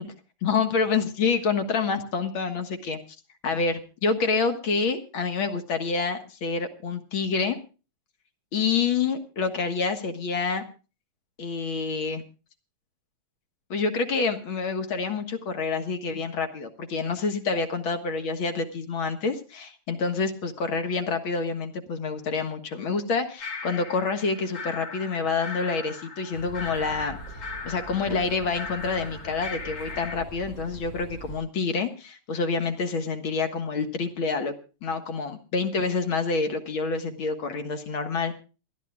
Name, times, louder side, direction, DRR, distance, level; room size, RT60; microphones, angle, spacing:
voice 1, 0.4-3.0 3.4-7.6 8.5-10.6 11.4-12.2 13.7-27.2 27.6-34.5 34.8-38.4, left 4 dB, 65° left, 7 dB, 2.3 m, -27 dB
sound 1, 23.4-30.1, left 4 dB, 35° left, 2.4 m, -39 dB
sound 2, 26.3-31.4, right 2 dB, 15° left, 7.0 m, -43 dB
27.5 x 11.5 x 2.4 m, 0.33 s
omnidirectional pair, 2.4 m